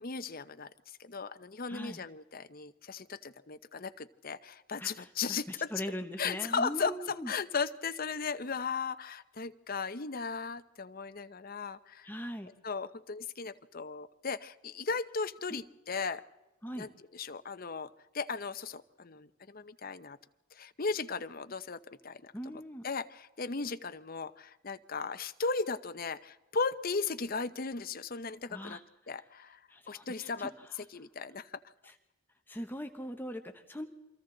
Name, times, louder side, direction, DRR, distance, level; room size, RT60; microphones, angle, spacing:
voice 1, 0.0-5.7 6.2-12.1 12.6-16.2 16.8-20.2 20.5-28.8 29.1-29.6 29.9-30.5 30.8-31.6, left 4 dB, 40° left, 10 dB, 0.7 m, -37 dB
voice 2, 1.7-2.0 4.8-7.3 12.0-12.5 15.5-15.6 16.6-16.9 22.3-22.8 28.5-28.8 29.7-30.5 31.8-31.9 32.5-33.9, equal, 10° left, 6 dB, 1.0 m, -40 dB
28.5 x 24.5 x 3.9 m, 1.1 s
head